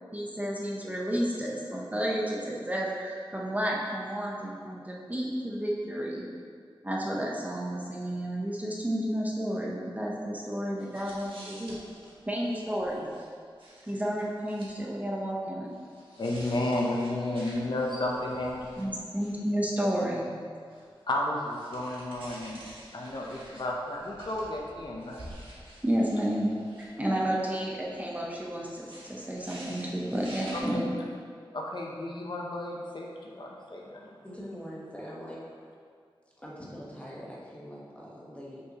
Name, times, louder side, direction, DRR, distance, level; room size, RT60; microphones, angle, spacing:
voice 1, 0.1-6.3 6.8-11.8 12.3-13.1 13.9-15.7 18.8-20.3 25.8-26.5 26.8-30.9, equal, 15° right, -3 dB, 0.8 m, -31 dB
sound 1, 10.8-13.3 13.6-14.7 15.7-19.5 20.7-27.0 27.3-27.4 28.1-30.6, right 1 dB, 70° right, 1.5 m, -49 dB
voice 2, 16.2-18.7 21.1-22.6 22.9-25.2 30.5-30.9 31.5-34.1, left 1 dB, 55° left, -2 dB, 0.8 m, -32 dB
voice 3, 34.2-35.5 36.4-38.6, equal, 15° left, -5 dB, 1.3 m, -43 dB
6.4 x 5.7 x 2.9 m, 2.1 s
wide cardioid pair, 95°, 9 cm